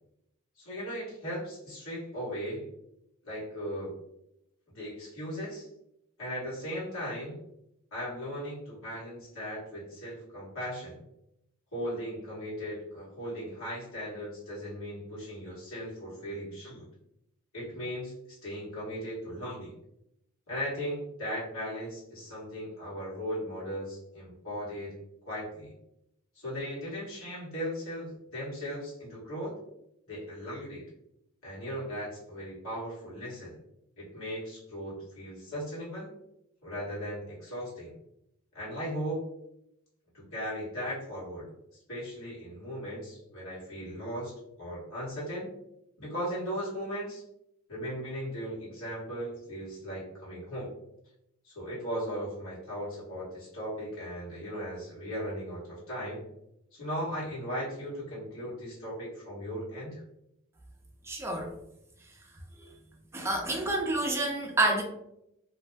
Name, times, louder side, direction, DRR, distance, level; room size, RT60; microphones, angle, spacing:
voice 1, 0.6-2.6 3.2-3.9 4.7-5.7 6.2-7.4 7.9-10.9 11.7-16.8 17.5-19.7 20.5-25.0 25.3-25.7 26.3-29.5 30.1-30.9 31.4-33.6 34.0-36.1 36.6-37.9 38.5-39.3 40.1-41.5 41.9-45.5 46.0-47.2 47.7-50.7 51.4-56.2 56.7-60.0, equal, 70° left, -7 dB, 1.4 m, -37 dB
voice 2, 61.1-61.5 62.6-62.7 63.1-64.8, right 2 dB, 10° right, 1 dB, 0.4 m, -28 dB
2.6 x 2.1 x 3.3 m, 0.80 s
head